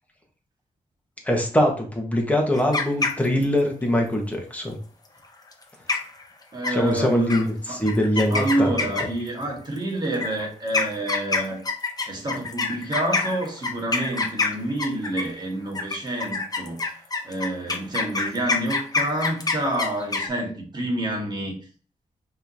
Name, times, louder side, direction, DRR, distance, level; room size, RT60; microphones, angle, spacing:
voice 1, 1.2-4.8 6.7-8.7, left 1 dB, 10° left, 1.3 m, -23 dB
sound 1, 2.5-3.6 5.5-5.6 5.9-6.2 6.6-7.0 7.3-7.4 7.9-9.3 10.1-15.4 15.7-20.3, left 3 dB, 25° left, 0.7 m, -26 dB
voice 2, 6.5-7.8 8.3-11.6 12.1-16.8 17.2-21.6, right 1 dB, 30° right, 1.6 m, -28 dB
5.5 x 3.2 x 2.7 m
wide cardioid pair, 100°, 14 cm